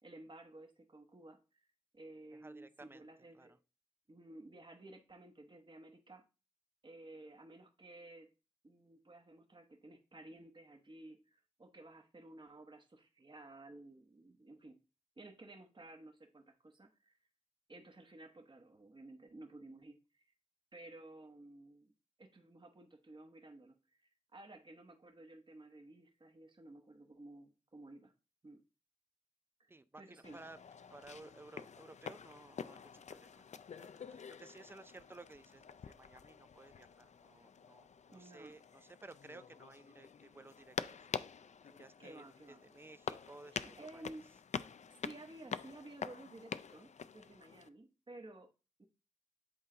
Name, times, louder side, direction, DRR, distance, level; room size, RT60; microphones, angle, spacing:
voice 1, 0.0-1.7 1.9-3.6 4.1-6.2 6.8-8.3 8.6-14.8 15.2-17.2 17.7-20.2 20.7-21.9 22.2-28.1 28.4-28.6 29.6-29.7 30.0-30.4 38.1-38.6 42.0-42.6 43.5-44.2 44.9-48.5 48.8-48.9, right 2 dB, 40° right, 1.1 m, -54 dB
voice 2, 2.3-3.1 3.3-3.6 29.7-30.6 30.9-33.5 33.8-41.0 41.6-44.2 44.7-44.8, right 2 dB, 20° right, 0.5 m, -56 dB
echo footsteps on tile, 30.2-47.7, left 6 dB, 70° left, 0.4 m, -47 dB
7.9 x 4.0 x 3.8 m
wide cardioid pair, 75°, 12 cm